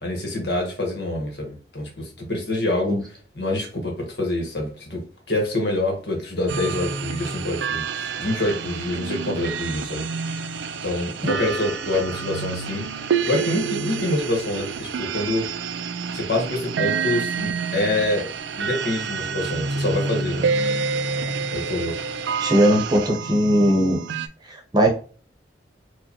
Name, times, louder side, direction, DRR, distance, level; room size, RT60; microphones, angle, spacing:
voice 1, 0.0-3.0 3.3-5.0 5.3-10.0 10.4-10.5 10.8-15.5 16.1-18.3 18.6-20.5 21.5-22.1, left 1 dB, 65° left, 1 dB, 1.3 m, -26 dB
sound 1, 6.5-24.3, right 5 dB, 80° right, 0.4 m, -28 dB
voice 2, 22.4-24.0 24.5-24.9, equal, 25° right, 1 dB, 0.9 m, -19 dB
4.7 x 2.2 x 2.9 m, 0.39 s
head